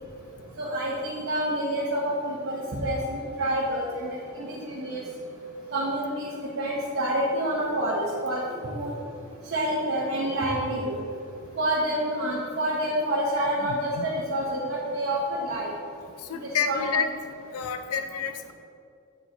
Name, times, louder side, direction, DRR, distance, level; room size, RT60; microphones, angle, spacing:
voice 1, 0.6-5.0 5.7-6.3 6.6-8.9 9.5-11.0 11.6-15.7 16.3-16.9, right 1 dB, 50° right, -6 dB, 0.9 m, -28 dB
voice 2, 13.6-14.1 16.2-17.1 17.5-18.5, left 6 dB, 90° left, 8 dB, 0.4 m, -29 dB
8.5 x 4.8 x 3.9 m, 2.5 s
head